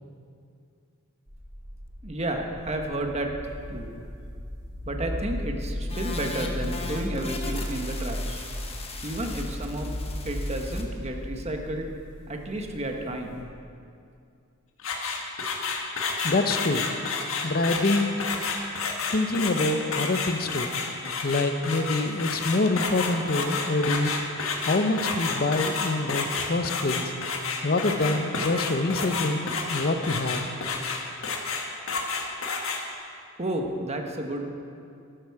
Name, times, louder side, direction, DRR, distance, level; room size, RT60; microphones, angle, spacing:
sound 1, 1.3-13.4, equal, 60° right, 3.6 m, -36 dB
voice 1, 2.0-3.3 3.7-3.9 4.9-8.5 9.0-9.9 10.2-11.9 12.3-13.4 33.4-34.4, right 1 dB, 30° right, 3 dB, 1.1 m, -31 dB
sound 2, 5.9-10.8, left 3 dB, 30° left, 1.1 m, -39 dB
sound 3, 14.8-32.8, left 4 dB, 80° left, 1.4 m, -30 dB
voice 2, 16.2-16.9 17.4-18.1 19.1-20.7 21.2-24.2 24.6-27.1 27.6-30.4, left 2 dB, 45° left, 8 dB, 0.7 m, -26 dB
12.5 x 11.0 x 4.8 m, 2.4 s
head